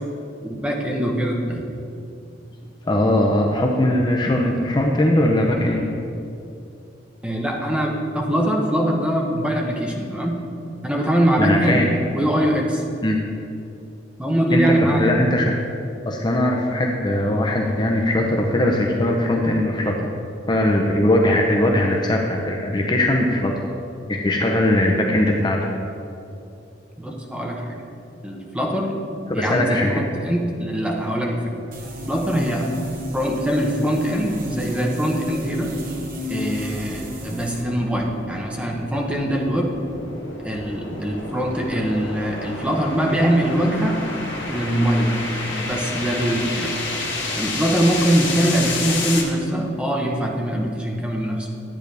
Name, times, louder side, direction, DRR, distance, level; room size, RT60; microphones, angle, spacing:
voice 1, 0.4-1.7 7.2-10.4 10.8-11.8 12.1-12.8 14.2-15.1 27.0-27.8 28.2-29.0 29.3-31.5 32.1-32.7 33.1-35.7 36.3-39.8 40.4-44.0 44.5-46.8 47.3-51.5, right 1 dB, 5° right, -1 dB, 1.0 m, -22 dB
voice 2, 2.9-5.8 11.4-11.9 13.0-13.2 14.5-15.5 16.0-20.1 20.5-23.5 24.1-25.6 29.3-30.0, left 1 dB, 25° left, 1 dB, 0.6 m, -20 dB
sound 1, 31.7-37.6, left 1 dB, 50° right, 1.2 m, -32 dB
sound 2, 36.0-49.2, left 3 dB, 80° left, 1.7 m, -31 dB
10.5 x 8.9 x 3.4 m, 2.6 s
head